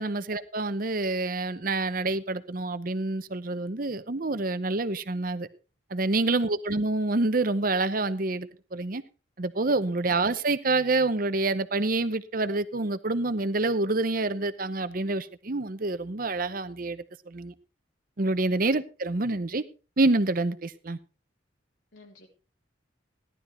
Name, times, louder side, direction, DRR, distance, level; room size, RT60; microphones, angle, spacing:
voice 1, 0.0-5.5 5.9-9.0 9.4-17.5 18.2-19.6 20.0-21.0, right 2 dB, 50° right, 0.8 m, -27 dB
voice 2, 6.2-6.6 9.9-10.1 18.5-18.7 21.9-22.3, left 1 dB, 80° left, 3.9 m, -54 dB
16.5 x 11.5 x 3.3 m
head